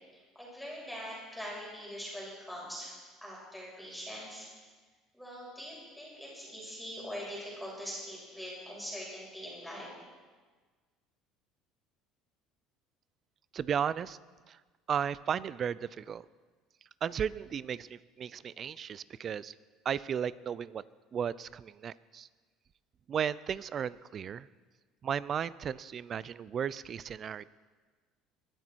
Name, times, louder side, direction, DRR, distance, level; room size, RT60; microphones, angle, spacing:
voice 1, 0.1-4.5 5.1-9.9, equal, ahead, -5 dB, 6.1 m, -43 dB
voice 2, 13.5-14.2 14.5-14.6 14.9-16.3 17.0-19.5 19.8-20.8 21.1-22.3 23.1-24.5 25.0-27.4, right 8 dB, 40° right, 19 dB, 0.5 m, -34 dB
21.0 x 12.5 x 4.6 m, 1.4 s
supercardioid pair, 115°, 0 cm